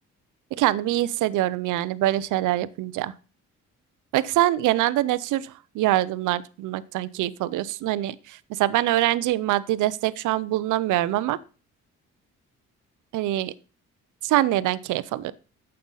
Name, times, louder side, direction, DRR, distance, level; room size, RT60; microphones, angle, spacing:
voice 1, 0.6-3.1 4.1-11.4 13.1-13.5 14.2-15.3, right 15 dB, 90° right, 18 dB, 0.6 m, -24 dB
9.4 x 7.7 x 3.9 m, 0.34 s
cardioid pair, 90°, 30 cm